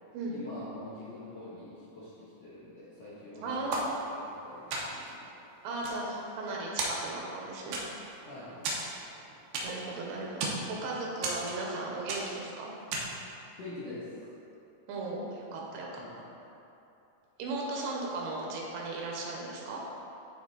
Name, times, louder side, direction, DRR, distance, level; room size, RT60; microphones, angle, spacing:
voice 1, 0.3-5.3 8.2-8.6 13.6-14.1 16.0-16.3, left 2 dB, 65° left, -11 dB, 1.7 m, -45 dB
voice 2, 3.4-3.9 5.6-7.8 9.6-12.7 14.9-16.0 17.4-19.8, right 2 dB, 90° right, -3 dB, 3.0 m, -36 dB
sound 1, 3.7-4.4 4.7-5.2 5.6-6.5 6.8-7.4 7.7-8.2 8.6-9.9 10.2-10.7 11.2-11.8 12.1-12.5 12.9-13.3, right 2 dB, 70° right, 2.0 m, -35 dB
11.0 x 3.6 x 4.0 m, 2.8 s
omnidirectional pair, 4.6 m